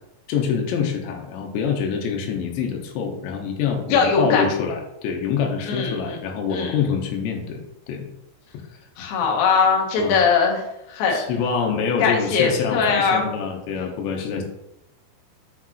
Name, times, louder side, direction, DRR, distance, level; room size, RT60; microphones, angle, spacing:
voice 1, 0.3-8.0 10.0-10.2 11.1-14.4, left 6 dB, 90° left, 2 dB, 3.2 m, -25 dB
voice 2, 3.9-4.4 5.7-6.2 6.5-6.8 9.0-11.3 12.0-13.3, left 5 dB, 65° left, 0 dB, 2.6 m, -21 dB
7.3 x 6.0 x 3.0 m, 0.83 s
omnidirectional pair, 5.1 m